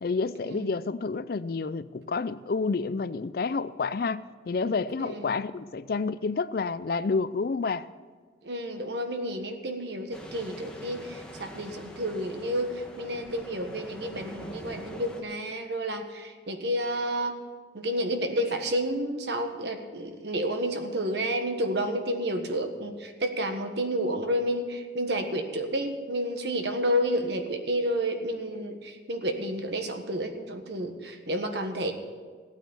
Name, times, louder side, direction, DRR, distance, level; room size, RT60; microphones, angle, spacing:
voice 1, 0.0-7.9, left 4 dB, 55° left, 16 dB, 0.4 m, -29 dB
voice 2, 5.0-5.4 8.4-17.3 17.7-31.9, equal, 65° right, 5 dB, 1.5 m, -30 dB
sound 1, 10.1-15.2, equal, 5° left, 1.3 m, -44 dB
15.5 x 9.1 x 7.1 m, 1.5 s
head